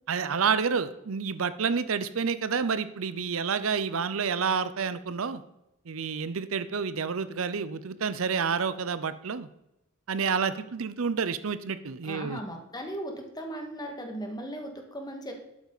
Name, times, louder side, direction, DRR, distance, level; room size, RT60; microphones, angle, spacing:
voice 1, 0.1-5.4 5.9-9.5 10.1-12.4, right 6 dB, 70° right, 13 dB, 0.6 m, -29 dB
voice 2, 12.0-15.4, right 1 dB, 20° left, 3 dB, 1.9 m, -37 dB
12.0 x 8.4 x 4.1 m, 0.89 s
head